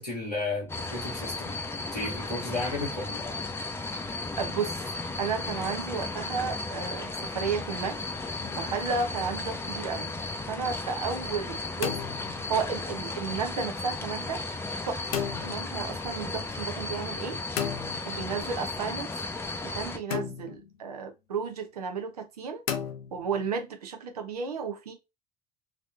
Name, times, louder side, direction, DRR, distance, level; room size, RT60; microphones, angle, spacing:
voice 1, 0.0-1.5 1.9-3.4, left 2 dB, 90° left, 1.1 m, -33 dB
sound 1, 0.7-20.0, left 3 dB, 10° left, 0.6 m, -35 dB
voice 2, 4.3-4.8 5.2-8.0 8.6-10.1 10.5-12.0 12.5-14.4 14.8-17.4 18.0-19.2 19.6-22.6 23.1-24.9, right 5 dB, 75° right, 0.7 m, -33 dB
sound 2, 8.4-9.0 11.5-12.8 15.1-15.7 17.6-18.5 20.1-20.8 22.7-23.6, left 9 dB, 65° left, 0.6 m, -35 dB
3.2 x 2.9 x 2.5 m
figure-of-eight pair, 60°, 20 cm